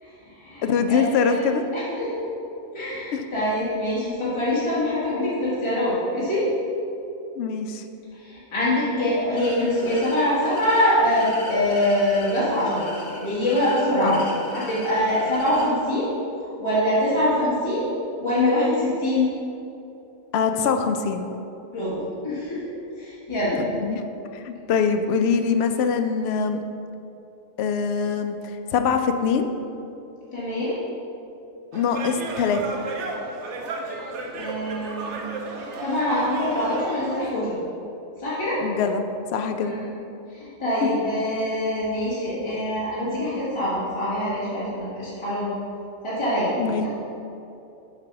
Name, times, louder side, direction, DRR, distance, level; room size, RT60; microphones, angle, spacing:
voice 1, 0.0-1.4 1.7-2.3 2.7-6.5 8.1-12.9 13.2-14.2 14.5-16.1 16.4-17.9 18.2-19.3 21.7-22.6 22.9-23.6 30.3-30.7 34.3-35.2 35.6-37.6 38.2-38.6 39.6-39.9 40.3-45.5 46.0-46.5 46.8-46.9, left 1 dB, 25° left, -10 dB, 1.6 m, -24 dB
voice 2, 0.6-1.6 3.1-3.2 7.4-7.8 14.0-14.2 20.3-21.3 23.8-24.0 24.3-26.6 27.6-28.4 28.7-29.5 31.7-32.8 38.6-39.0 39.3-39.8 40.8-40.9 46.6-46.9, left 6 dB, 65° left, 6 dB, 0.7 m, -23 dB
sound 1, 9.4-15.7, left 1 dB, 80° left, 1.8 m, -40 dB
sound 2, 31.7-37.3, right 3 dB, 70° right, 1.0 m, -33 dB
6.9 x 4.1 x 5.8 m, 2.8 s
omnidirectional pair, 1.3 m